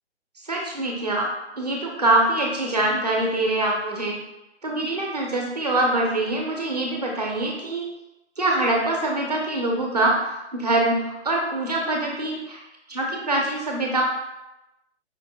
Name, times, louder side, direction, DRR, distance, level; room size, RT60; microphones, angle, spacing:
voice 1, 0.4-4.2 4.6-7.9 8.4-12.6 12.9-14.0, right 2 dB, 35° right, -1 dB, 0.6 m, -24 dB
5.0 x 2.4 x 2.7 m, 0.95 s
hypercardioid pair, 175°, 35 cm